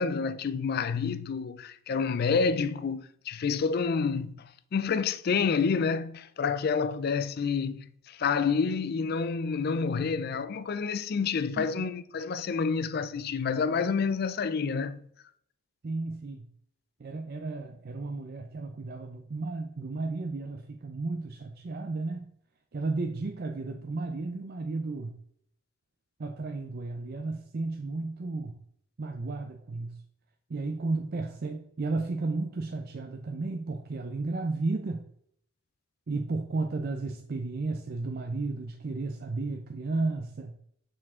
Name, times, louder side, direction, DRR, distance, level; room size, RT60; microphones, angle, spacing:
voice 1, 0.0-4.4 4.7-15.0, left 5 dB, 50° left, 0.4 m, -28 dB
voice 2, 11.6-11.9 15.8-16.5 17.0-22.3 22.7-25.2 26.2-28.6 29.0-30.0 30.5-35.1 36.1-40.6, right 3 dB, 50° right, 0.5 m, -33 dB
6.4 x 4.5 x 3.7 m
head